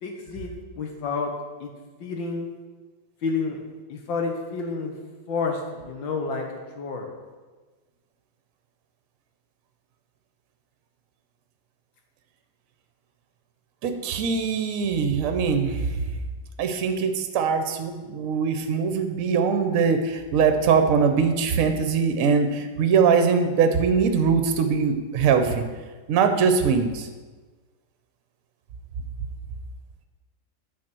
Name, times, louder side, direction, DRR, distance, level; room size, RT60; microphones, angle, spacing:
voice 1, 0.0-1.3 1.6-1.7 2.0-2.5 3.2-3.6 3.9-4.9 5.3-7.1, left 4 dB, 90° left, 2 dB, 1.8 m, -30 dB
voice 2, 13.8-16.0 16.6-25.6 26.1-27.1, right 6 dB, 60° right, 7 dB, 1.0 m, -22 dB
9.0 x 4.2 x 6.1 m, 1.3 s
omnidirectional pair, 2.0 m